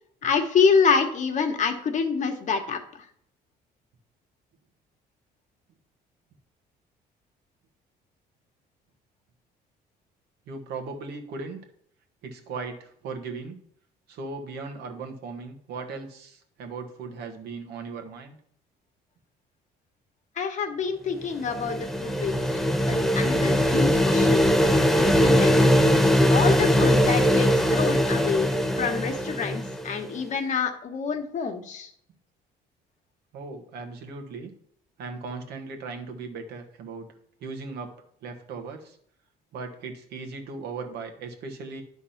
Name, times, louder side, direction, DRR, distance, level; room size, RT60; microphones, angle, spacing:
voice 1, 0.2-3.1 20.4-22.4 22.9-24.4 25.0-25.7 26.3-31.9, left 5 dB, 45° left, 5 dB, 1.2 m, -26 dB
voice 2, 10.5-11.7 12.2-13.6 14.1-18.4 33.3-34.5 35.0-37.1 37.4-37.9 38.2-39.0 39.5-41.8, right 4 dB, 75° right, 4 dB, 1.4 m, -37 dB
sound 1, 21.2-30.0, equal, ahead, 0.6 m, -21 dB
10.0 x 3.6 x 5.7 m, 0.64 s
cardioid pair, 110°, 17 cm